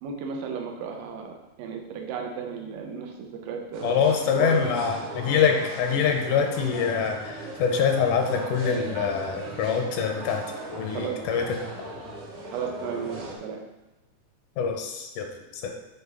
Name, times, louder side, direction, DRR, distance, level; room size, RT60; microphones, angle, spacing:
voice 1, 0.0-4.8 10.9-11.2 12.5-13.6, right 6 dB, 90° right, 2 dB, 2.3 m, -34 dB
sound 1, 3.7-13.4, right 1 dB, 70° right, 2.5 m, -38 dB
voice 2, 3.8-11.5 14.6-15.7, left 6 dB, 80° left, 3 dB, 2.1 m, -25 dB
6.8 x 4.2 x 3.5 m, 1.0 s
omnidirectional pair, 3.7 m